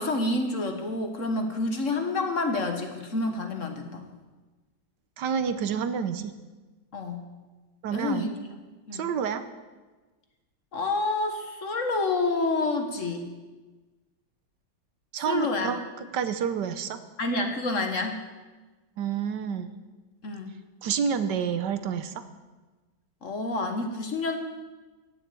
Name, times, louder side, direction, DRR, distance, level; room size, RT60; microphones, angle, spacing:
voice 1, 0.0-4.0 6.9-7.2 7.9-8.3 8.9-9.0 10.7-13.3 15.3-15.7 17.2-18.2 20.2-20.5 23.2-24.4, left 2 dB, 45° left, 5 dB, 1.5 m, -28 dB
voice 2, 5.2-6.3 7.8-8.3 8.9-9.5 15.1-17.0 19.0-19.8 20.8-22.2, right 7 dB, 75° right, 10 dB, 1.4 m, -29 dB
16.0 x 7.2 x 8.3 m, 1.3 s
omnidirectional pair, 1.9 m